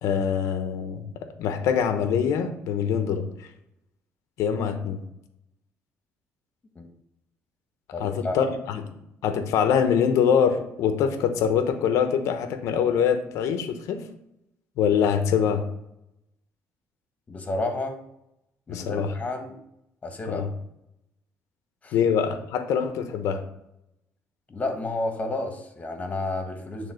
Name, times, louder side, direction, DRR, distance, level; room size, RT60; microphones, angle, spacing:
voice 1, 0.0-1.1 1.4-3.5 4.4-5.0 8.0-8.8 9.2-14.0 14.8-15.6 18.7-19.1 20.3-20.5 21.9-23.4, left 7 dB, 80° left, 7 dB, 0.9 m, -24 dB
voice 2, 7.9-8.5 17.3-18.0 18.7-19.6 20.0-20.4 21.8-21.9 24.5-26.9, left 2 dB, 30° left, 4 dB, 1.6 m, -31 dB
8.9 x 3.6 x 5.1 m, 0.82 s
cardioid pair, 95°, 5 cm